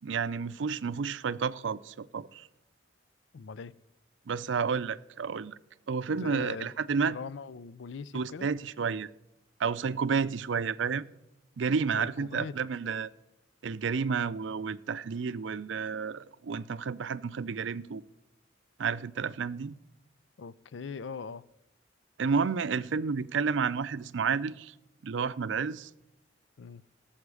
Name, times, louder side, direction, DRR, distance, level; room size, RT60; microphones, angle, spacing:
voice 1, 0.0-2.5 4.3-5.6 5.9-7.2 8.1-9.1 9.6-11.1 11.6-13.1 13.6-18.0 18.8-19.7 22.2-24.7 25.0-25.9, right 5 dB, 75° right, 0.5 m, -31 dB
voice 2, 3.3-3.7 6.2-6.7 7.0-8.5 12.0-12.6 20.4-21.4 26.6-26.8, left 5 dB, 75° left, 0.4 m, -41 dB
18.0 x 7.2 x 4.9 m
head